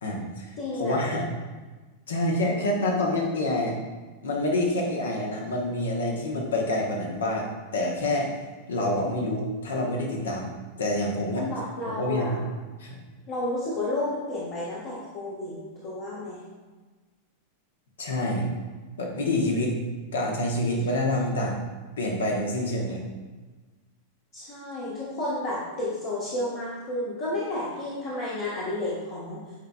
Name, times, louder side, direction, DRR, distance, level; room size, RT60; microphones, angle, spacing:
voice 1, 0.0-1.3 2.1-3.8 4.2-8.3 8.7-10.5 10.8-11.5 11.9-12.4 12.8-13.0 18.0-18.5 19.0-19.7 20.1-21.6 22.0-23.0, left 1 dB, 65° left, 0 dB, 1.1 m, -27 dB
voice 2, 0.6-1.1 11.3-12.4 13.3-15.5 15.8-16.4 24.3-29.4, left 1 dB, 50° left, -9 dB, 1.4 m, -31 dB
8.7 x 4.7 x 2.3 m, 1.3 s
figure-of-eight pair, 90°, 0 cm